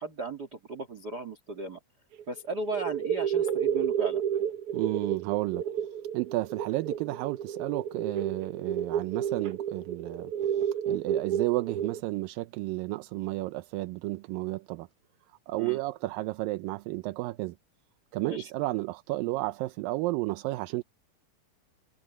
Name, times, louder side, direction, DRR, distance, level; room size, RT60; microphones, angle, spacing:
voice 1, 0.0-1.8 2.3-4.2 15.6-15.8 18.2-18.4, right 3 dB, 30° right, 2.6 m, -36 dB
sound 1, 2.2-2.4 2.7-12.0, right 9 dB, 65° right, 1.4 m, -31 dB
voice 2, 4.7-5.6 6.1-14.9 15.5-17.6 18.1-20.8, right 20 dB, 85° right, 2.4 m, -32 dB
omnidirectional pair, 4.0 m